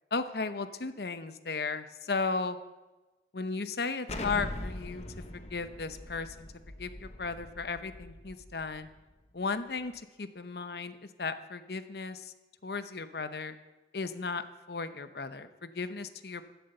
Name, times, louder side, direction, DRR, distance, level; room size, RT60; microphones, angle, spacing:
voice 1, 0.1-2.6 3.3-5.0 5.5-6.5 6.8-8.9 9.3-12.3 12.6-13.6 13.9-16.5, left 4 dB, 60° left, 11 dB, 0.8 m, -35 dB
Explosion, 4.1-8.8, left 1 dB, 35° left, 1.0 m, -42 dB
15.0 x 7.9 x 6.7 m, 1.1 s
head